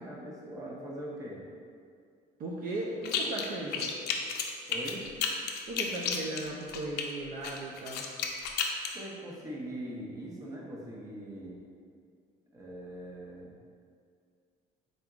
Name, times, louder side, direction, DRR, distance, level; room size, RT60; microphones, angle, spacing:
voice 1, 0.0-1.4 4.7-5.1 8.9-11.6 12.5-13.5, right 1 dB, 20° right, -5 dB, 0.8 m, -41 dB
voice 2, 2.4-4.0 5.7-8.1, right 2 dB, 55° right, -3 dB, 0.5 m, -37 dB
sound 1, 3.0-3.5 3.7-7.0 7.4-8.9, left 7 dB, 75° left, 0.4 m, -32 dB
3.9 x 3.4 x 2.4 m, 2.2 s
cardioid pair, 110°, 17 cm